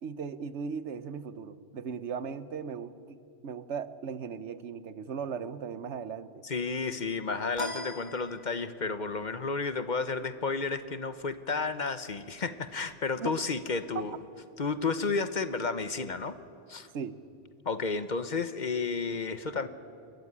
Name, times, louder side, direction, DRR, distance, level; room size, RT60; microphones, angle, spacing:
voice 1, 0.0-6.3 13.2-13.3 13.9-14.0 16.9-17.2, right 6 dB, 85° right, 14 dB, 1.2 m, -37 dB
voice 2, 6.4-14.2 14.6-16.4 16.7-16.9 17.6-19.7, left 4 dB, 45° left, 12 dB, 1.0 m, -32 dB
sound 1, 7.6-8.9, left 2 dB, 25° left, 1.3 m, -40 dB
26.5 x 14.5 x 9.7 m, 2.5 s
omnidirectional pair, 1.1 m